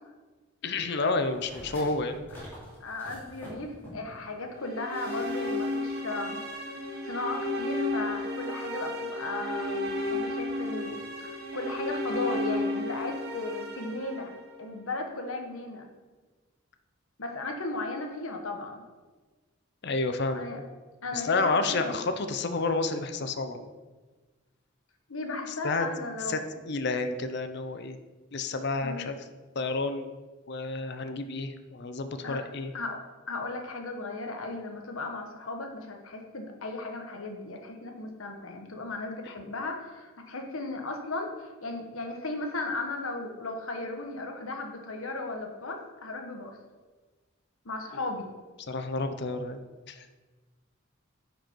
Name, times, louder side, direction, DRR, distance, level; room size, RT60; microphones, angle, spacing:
voice 1, 0.6-2.2 19.8-20.6 21.1-23.7 25.6-25.9 26.3-26.4 26.6-28.0 28.3-29.2 29.6-30.2 30.5-32.7 48.7-50.1, left 3 dB, 55° left, 8 dB, 0.6 m, -30 dB
sound 1, 1.2-4.2 4.9-5.9 6.2-6.3, equal, 10° left, 2.9 m, -47 dB
voice 2, 2.8-6.8 7.0-14.3 14.6-15.9 17.2-18.8 20.3-20.6 21.0-22.1 25.1-26.5 28.8-29.1 32.2-32.4 32.7-33.0 33.3-46.6 47.6-48.3, left 2 dB, 90° left, 4 dB, 1.2 m, -36 dB
sound 2, 4.6-14.8, left 1 dB, 50° right, 1.4 m, -33 dB
9.9 x 5.1 x 4.5 m, 1.3 s
head